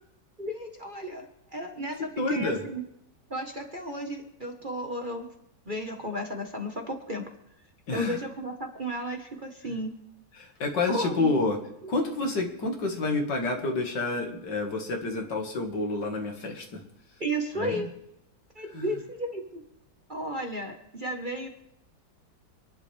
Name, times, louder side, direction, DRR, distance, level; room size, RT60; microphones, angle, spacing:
voice 1, 0.4-2.8 3.3-5.3 5.7-7.3 7.9-9.9 10.9-11.3 11.8-11.9 17.2-17.9 18.5-19.6 20.1-21.5, right 1 dB, 30° right, 3 dB, 1.4 m, -34 dB
voice 2, 2.2-2.7 7.9-8.2 10.4-11.6 11.9-16.8 17.6-17.9 18.7-18.8, left 3 dB, 65° left, 3 dB, 2.5 m, -28 dB
28.0 x 11.0 x 3.4 m, 0.80 s
omnidirectional pair, 2.0 m